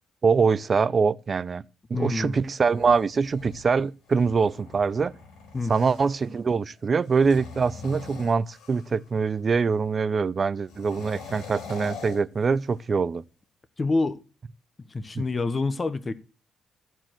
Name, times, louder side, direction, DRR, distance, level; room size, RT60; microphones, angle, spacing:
voice 1, 0.2-1.6 1.9-5.1 5.7-13.2 15.1-15.2, right 5 dB, 40° right, 0.5 m, -24 dB
voice 2, 1.9-2.4 5.5-5.7 13.8-14.2 14.9-16.1, left 3 dB, 25° left, 1.0 m, -27 dB
sound 1, 2.5-6.3 7.0-9.1 10.7-13.0, left 4 dB, 80° left, 4.1 m, -43 dB
14.0 x 4.6 x 7.5 m
cardioid pair, 90°, 0 cm